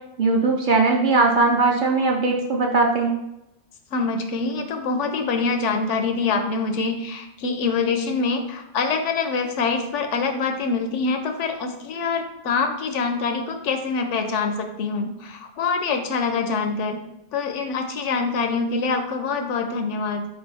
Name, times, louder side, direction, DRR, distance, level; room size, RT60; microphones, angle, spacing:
voice 1, 0.2-3.2, right 3 dB, 60° right, 0 dB, 0.6 m, -19 dB
voice 2, 3.9-17.0 17.3-20.3, left 4 dB, 90° left, 5 dB, 0.9 m, -25 dB
4.3 x 3.1 x 3.3 m, 0.89 s
omnidirectional pair, 1.2 m